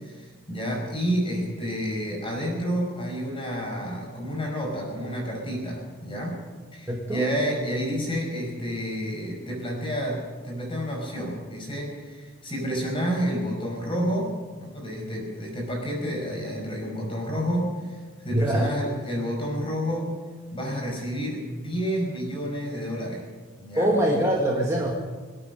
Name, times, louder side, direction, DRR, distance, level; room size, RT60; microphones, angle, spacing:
voice 1, 0.0-6.4 6.7-20.1 20.5-23.2 23.6-23.9, equal, 25° left, 0 dB, 5.2 m, -30 dB
voice 2, 6.9-7.2 18.3-18.7 23.8-24.9, right 1 dB, 15° right, -2 dB, 1.6 m, -23 dB
24.0 x 8.9 x 6.5 m, 1.4 s
head